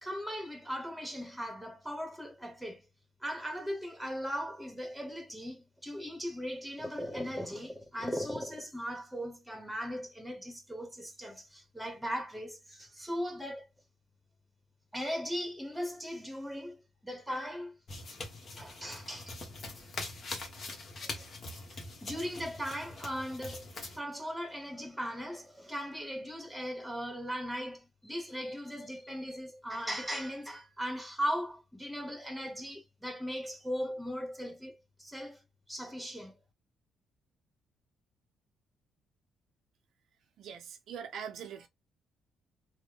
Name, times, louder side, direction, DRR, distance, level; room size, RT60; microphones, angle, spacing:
voice 1, 0.0-2.8 3.2-13.7 14.9-17.8 18.6-19.4 21.0-21.3 21.7-23.7 23.9-35.4 35.7-36.4, equal, 5° right, 1.1 m, -38 dB
sound 1, 17.9-24.0, left 3 dB, 45° left, 1.1 m, -43 dB
voice 2, 40.4-41.7, right 7 dB, 75° right, 0.6 m, -42 dB
3.0 x 2.1 x 3.4 m
cardioid pair, 90°, 0 cm